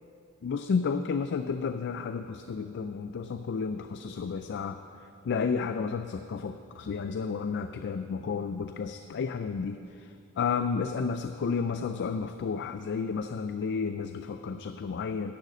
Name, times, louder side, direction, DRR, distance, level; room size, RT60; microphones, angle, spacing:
voice 1, 0.4-4.8 5.2-10.1 10.4-15.3, left 5 dB, 50° left, 9 dB, 0.4 m, -32 dB
11.5 x 6.6 x 7.3 m, 2.5 s
head